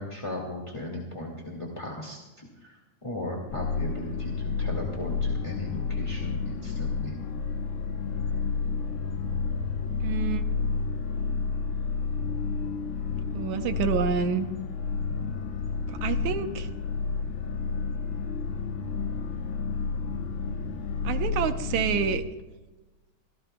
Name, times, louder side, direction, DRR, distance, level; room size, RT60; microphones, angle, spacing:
voice 1, 0.0-2.7 3.0-7.2 15.1-15.4, left 1 dB, 15° left, -1 dB, 1.5 m, -37 dB
sound 1, 3.5-22.2, left 4 dB, 65° left, 1.3 m, -30 dB
voice 2, 10.0-10.4 13.3-14.5 16.0-16.7 21.0-22.2, right 8 dB, 80° right, 8 dB, 2.2 m, -28 dB
25.0 x 17.0 x 2.3 m, 1.1 s
omnidirectional pair, 3.4 m